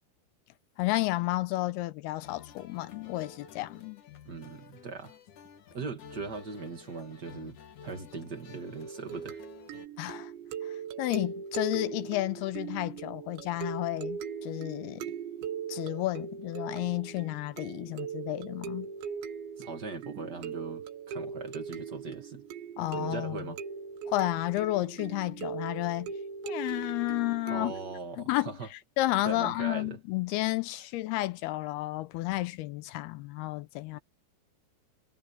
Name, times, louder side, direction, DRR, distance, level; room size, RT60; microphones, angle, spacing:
voice 1, 0.8-4.0 10.0-10.3 10.6-15.1 15.7-18.9 22.8-23.5 24.1-26.1 26.4-27.7 28.2-34.0, left 18 dB, 80° left, 2.4 m, -32 dB
sound 1, 2.2-9.9, left 6 dB, 55° left, 2.9 m, -52 dB
voice 2, 4.2-5.1 5.7-9.4 19.6-22.4 22.9-23.6 27.5-28.7 29.2-30.0, right 4 dB, 55° right, 1.1 m, -40 dB
sound 2, 8.8-28.0, right 7 dB, 85° right, 4.0 m, -40 dB
omnidirectional pair, 5.0 m